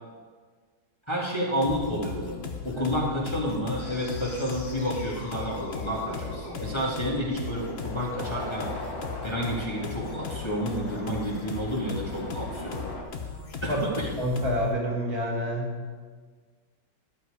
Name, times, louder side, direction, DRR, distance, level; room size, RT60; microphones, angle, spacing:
voice 1, 1.1-8.7 9.2-12.8 13.6-14.1, equal, 15° left, -4 dB, 2.1 m, -30 dB
sound 1, 1.6-14.8, left 5 dB, 40° left, 1.2 m, -38 dB
sound 2, 3.8-13.0, left 2 dB, 85° left, 2.6 m, -40 dB
voice 2, 14.2-15.8, equal, 55° right, -1 dB, 2.8 m, -28 dB
14.5 x 11.5 x 5.0 m, 1.5 s
omnidirectional pair, 1.9 m